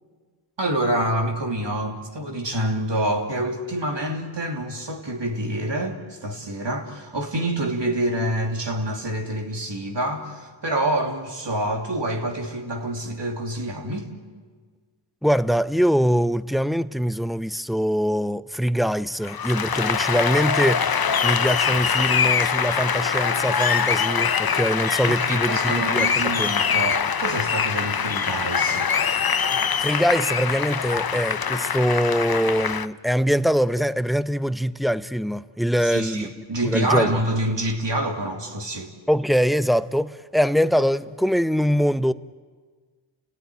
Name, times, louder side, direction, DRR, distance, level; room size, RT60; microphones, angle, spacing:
voice 1, 0.6-14.1 25.1-28.9 35.8-38.9, right 1 dB, 65° right, 2.9 m, -27 dB
voice 2, 15.2-26.5 29.5-36.3 36.6-37.2 39.1-42.1, equal, ahead, 0.7 m, -23 dB
Applause, 19.2-32.9, left 7 dB, 50° left, 0.7 m, -23 dB
29.5 x 17.0 x 9.8 m
wide cardioid pair, 55°, 47 cm